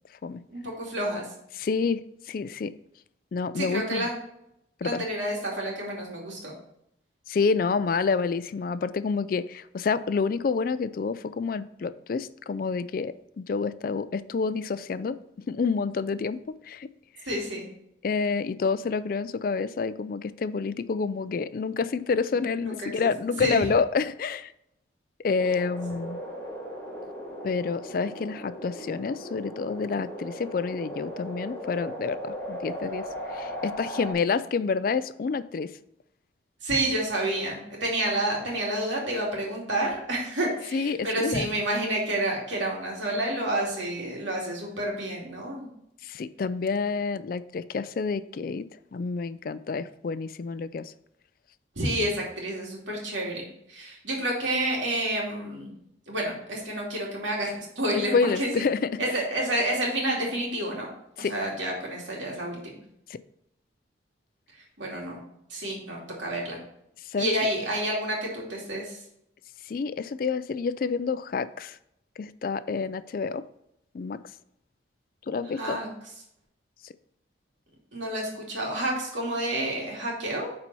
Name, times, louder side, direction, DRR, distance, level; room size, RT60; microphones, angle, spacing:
voice 1, 0.5-1.3 3.5-4.1 4.8-6.5 17.2-17.7 22.6-23.1 23.4-23.7 36.6-45.7 51.8-55.7 56.1-58.7 59.0-60.9 61.2-62.8 64.8-65.2 65.5-66.6 67.1-69.0 75.5-75.9 77.9-80.5, right 1 dB, 85° right, -2 dB, 2.5 m, -29 dB
voice 2, 1.5-2.7 3.3-4.1 4.8-5.0 7.3-15.2 15.5-16.9 18.0-24.5 25.2-26.2 27.4-35.7 40.7-41.5 46.0-48.6 48.9-50.9 58.1-59.2 61.2-61.3 63.1-63.2 67.0-67.3 69.7-71.8 72.2-73.4 73.9-74.2 75.3-75.8, left 5 dB, 50° left, 14 dB, 0.3 m, -28 dB
sound 1, 25.4-34.1, equal, 10° left, 1.4 m, -37 dB
8.9 x 4.3 x 4.1 m, 0.78 s
head